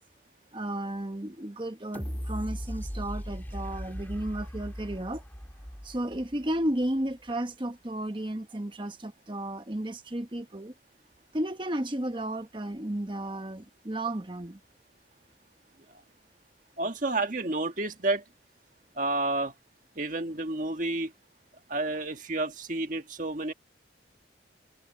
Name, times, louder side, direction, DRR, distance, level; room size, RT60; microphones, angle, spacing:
voice 1, 0.5-5.2 5.8-10.7 11.3-14.6, right 1 dB, 25° right, 1.1 m, -33 dB
sound 1, 1.9-6.8 7.3-7.4, equal, 10° left, 2.6 m, -38 dB
voice 2, 16.8-18.2 18.9-19.5 19.9-21.1 21.7-23.5, right 2 dB, 45° right, 1.7 m, -30 dB
head